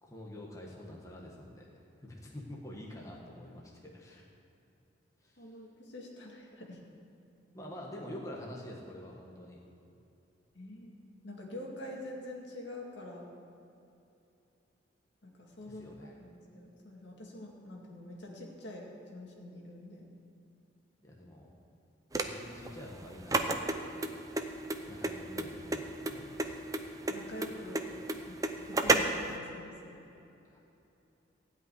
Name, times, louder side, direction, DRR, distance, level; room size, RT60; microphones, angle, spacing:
voice 1, 0.0-4.2 5.2-5.6 7.5-9.6 15.6-16.2 21.0-21.5 22.1-23.6 24.9-26.6 30.5-30.6, left 1 dB, 15° left, -3 dB, 1.4 m, -47 dB
voice 2, 5.4-6.8 10.5-10.9 11.2-13.3 15.2-15.8 16.2-20.1 27.1-27.9 28.3-28.4 28.7-30.0, left 1 dB, 70° left, -1 dB, 2.2 m, -45 dB
sound 1, 22.1-29.3, right 2 dB, 20° right, 0.6 m, -32 dB
16.0 x 5.6 x 9.4 m, 2.8 s
head